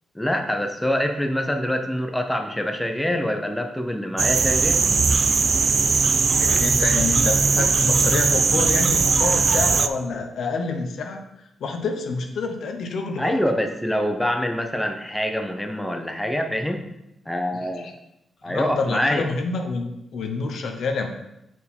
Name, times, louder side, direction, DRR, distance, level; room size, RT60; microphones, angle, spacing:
voice 1, 0.1-4.8 13.2-16.8 17.3-17.9 18.4-19.3, equal, 5° left, 4 dB, 0.8 m, -25 dB
sound 1, 4.2-9.9, right 4 dB, 50° right, 0.3 m, -19 dB
voice 2, 6.3-11.2 11.6-13.4 17.5-17.9 18.4-21.1, left 4 dB, 75° left, 4 dB, 0.8 m, -28 dB
4.5 x 4.5 x 5.4 m, 0.85 s
cardioid pair, 70°, 0 cm